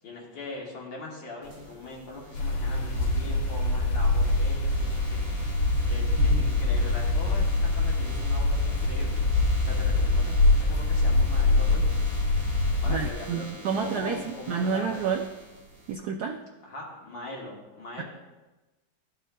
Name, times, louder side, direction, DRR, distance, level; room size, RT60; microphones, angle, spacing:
voice 1, 0.0-5.3 5.9-9.2 9.6-11.9 12.8-15.0 16.6-18.0, left 2 dB, 65° left, -3 dB, 2.2 m, -41 dB
sound 1, 1.4-15.9, right 2 dB, 60° right, 2.1 m, -46 dB
sound 2, 2.3-13.1, left 2 dB, 90° left, 1.9 m, -24 dB
voice 2, 6.2-6.5 12.9-14.2 14.5-15.2 15.9-16.4 18.0-18.1, right 6 dB, 85° right, 3 dB, 0.8 m, -29 dB
12.5 x 5.5 x 2.2 m, 1.1 s
omnidirectional pair, 2.2 m